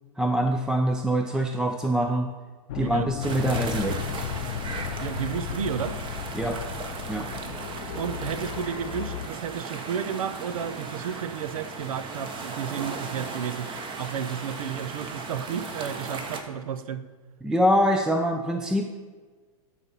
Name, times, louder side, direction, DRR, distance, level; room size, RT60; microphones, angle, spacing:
voice 1, 0.2-2.3 2.7-4.0 6.3-6.6 7.1-7.3 17.4-19.0, equal, 5° right, 4 dB, 0.4 m, -24 dB
sound 1, 2.7-9.3, left 11 dB, 70° left, 0.4 m, -35 dB
voice 2, 2.8-3.1 5.0-6.0 8.0-13.7 14.0-17.0, right 8 dB, 75° right, 13 dB, 0.6 m, -32 dB
sound 2, 3.2-16.4, right 4 dB, 25° right, 1.0 m, -37 dB
12.0 x 4.2 x 5.4 m, 1.4 s
hypercardioid pair, 115°, 18 cm